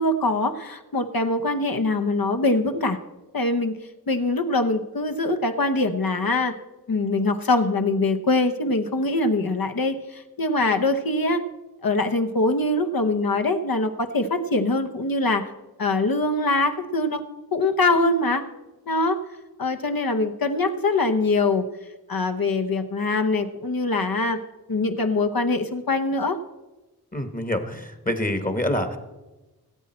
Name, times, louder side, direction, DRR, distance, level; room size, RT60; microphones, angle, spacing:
voice 1, 0.0-3.0 3.3-3.7 4.1-6.5 6.9-11.4 11.8-15.4 15.8-17.2 17.5-18.4 18.9-19.2 19.6-21.6 22.1-24.4 24.7-26.4, left 2 dB, 65° left, 7 dB, 0.9 m, -23 dB
voice 2, 27.1-29.0, left 1 dB, 20° left, 8 dB, 1.1 m, -26 dB
17.5 x 8.6 x 4.3 m, 1.1 s
wide cardioid pair, 70°, 38 cm